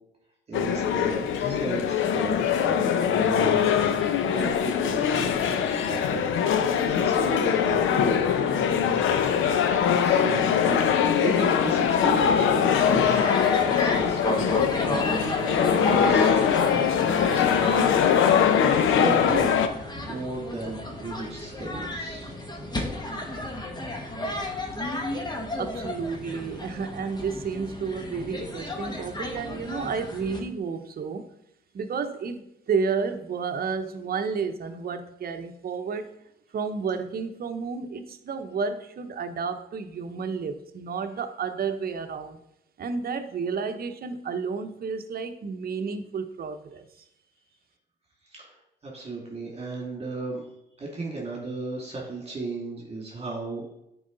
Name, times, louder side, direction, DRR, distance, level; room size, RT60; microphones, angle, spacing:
sound 1, 0.5-19.7, left 8 dB, 80° left, 0.7 m, -22 dB
voice 1, 0.5-4.0 4.3-6.4 6.8-8.2 9.8-10.9 11.2-13.3 13.6-18.4 18.7-19.7 20.0-22.3 48.3-50.4 50.8-53.7, right 2 dB, 30° right, 2.3 m, -35 dB
sound 2, 12.7-30.4, left 1 dB, 20° left, 1.3 m, -33 dB
voice 2, 25.6-31.3 31.7-36.2 36.5-42.4 42.8-46.9, right 5 dB, 50° right, 0.9 m, -31 dB
9.4 x 4.8 x 3.9 m
cardioid pair, 90°, 20 cm